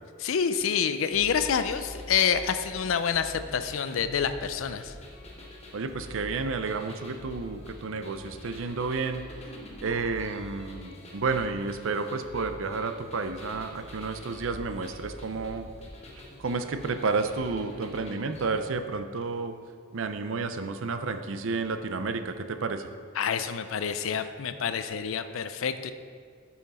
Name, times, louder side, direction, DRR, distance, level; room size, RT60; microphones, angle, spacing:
voice 1, 0.2-4.9 23.2-25.9, left 7 dB, 70° left, 10 dB, 0.4 m, -27 dB
sound 1, 1.1-18.5, left 1 dB, 30° left, 1.1 m, -45 dB
voice 2, 5.7-9.2 9.8-15.7 16.4-19.6 19.9-22.8, right 4 dB, 65° right, 9 dB, 0.5 m, -31 dB
8.9 x 5.7 x 4.2 m, 2.1 s
head